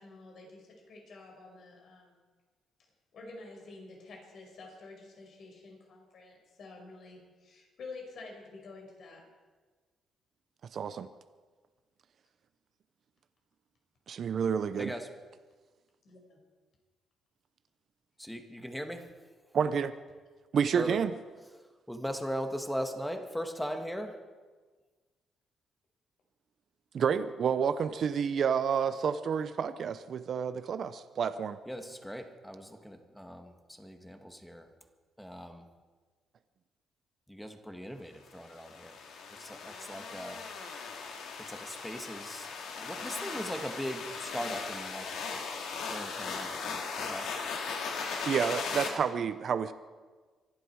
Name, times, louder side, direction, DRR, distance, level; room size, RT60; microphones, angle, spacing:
voice 1, 0.0-2.2 3.1-9.2 16.0-16.4 48.7-49.0, left 3 dB, 60° left, 0 dB, 5.5 m, -49 dB
voice 2, 10.7-11.1 14.1-14.9 19.5-19.9 20.5-21.1 26.9-31.6 48.3-49.7, right 7 dB, 55° right, 12 dB, 0.7 m, -29 dB
voice 3, 14.8-15.2 18.2-19.3 20.7-21.0 21.5-24.3 31.7-34.7 35.2-35.7 37.3-39.0 39.3-40.6 41.4-45.1 45.9-47.4, equal, 5° left, 5 dB, 1.9 m, -39 dB
sound 1, 38.4-48.9, left 5 dB, 80° left, 2.5 m, -38 dB
25.0 x 11.5 x 4.7 m, 1.4 s
cardioid pair, 90°, 0 cm